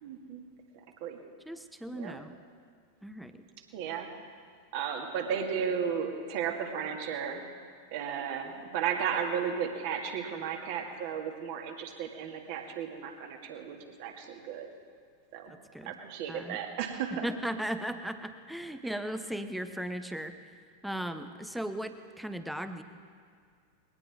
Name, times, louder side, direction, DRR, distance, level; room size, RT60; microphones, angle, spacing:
voice 1, 0.0-0.4 1.0-1.2 1.9-2.2 3.7-4.1 4.7-7.5 7.9-14.7 15.3-15.5 15.9-17.3, right 7 dB, 50° right, 3 dB, 2.0 m, -34 dB
voice 2, 1.5-2.3 3.0-3.4 15.5-15.9 16.3-16.6 17.1-20.4 20.8-22.8, right 1 dB, ahead, 9 dB, 0.9 m, -37 dB
21.0 x 18.0 x 3.6 m, 2.1 s
figure-of-eight pair, 90°, 0 cm